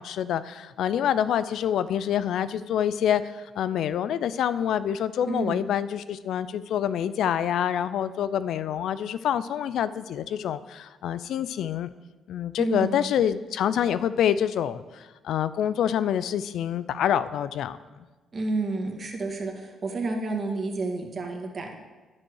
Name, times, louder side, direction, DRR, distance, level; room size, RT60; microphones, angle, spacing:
voice 1, 0.0-11.9 12.3-17.8, left 9 dB, 75° left, 15 dB, 0.5 m, -26 dB
voice 2, 5.3-5.7 12.6-13.1 18.3-21.7, right 2 dB, 40° right, 2 dB, 2.0 m, -30 dB
10.5 x 7.5 x 6.3 m, 1.3 s
cardioid pair, 90°, 0 cm